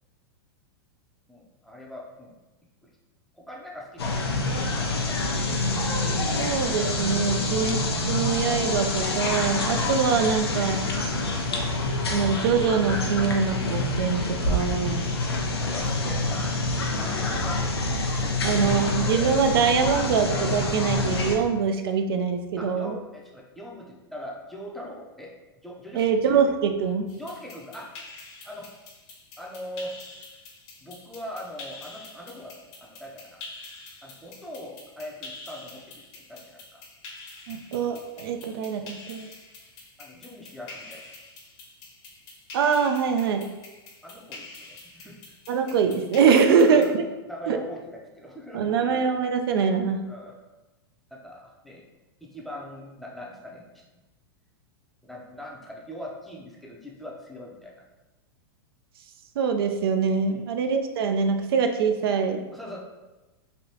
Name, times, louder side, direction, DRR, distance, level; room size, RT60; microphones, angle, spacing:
voice 1, 1.3-2.4 2.8-2.9 3.3-4.4 4.7-5.4 14.2-14.3 15.5-17.6 18.0-18.5 22.6-25.4 25.6-26.1 27.2-27.9 28.4-28.7 29.4-30.0 30.8-33.4 34.0-36.8 40.0-41.0 44.0-45.2 46.4-46.9 47.3-48.9 50.1-50.4 51.1-51.9 52.2-53.8 55.0-57.8 60.2-60.5 62.5-62.8, equal, ahead, -2 dB, 0.5 m, -41 dB
sound 1, 4.0-21.4, left 2 dB, 90° left, 0.6 m, -27 dB
voice 2, 6.4-10.9 12.1-15.0 18.4-23.0 25.9-27.1 37.5-39.3 42.5-43.5 45.5-47.0 47.5-47.6 48.5-50.0 59.4-62.4, right 6 dB, 70° right, 6 dB, 0.4 m, -24 dB
sound 2, 27.1-46.9, left 3 dB, 45° left, 0.8 m, -46 dB
3.3 x 2.5 x 2.8 m, 1.1 s
hypercardioid pair, 120°, 13 cm